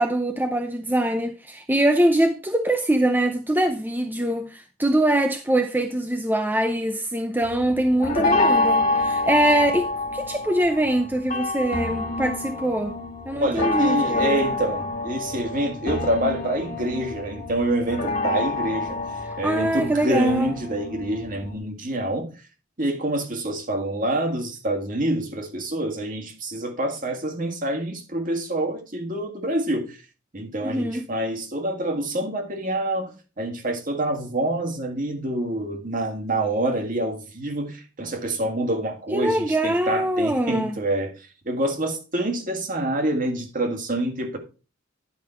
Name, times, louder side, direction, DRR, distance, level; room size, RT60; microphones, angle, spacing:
voice 1, 0.0-12.9 13.3-14.5 19.4-20.5 30.6-31.1 39.1-40.8, right 1 dB, 10° right, 0.6 m, -23 dB
sound 1, 7.4-21.6, left 2 dB, 45° left, 2.1 m, -27 dB
voice 2, 13.3-22.4 22.8-30.0 30.3-44.4, right 1 dB, 45° right, 1.9 m, -27 dB
10.5 x 5.6 x 4.4 m
head